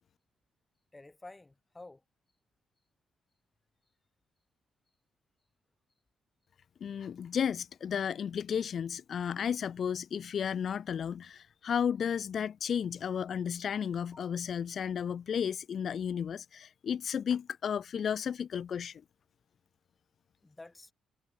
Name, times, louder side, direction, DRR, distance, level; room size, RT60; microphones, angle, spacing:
voice 1, 0.9-2.0 14.1-14.3 20.4-20.9, left 2 dB, 15° left, 3.3 m, -50 dB
voice 2, 6.8-19.0, left 8 dB, 55° left, 0.5 m, -33 dB
cardioid pair, 90°, 0 cm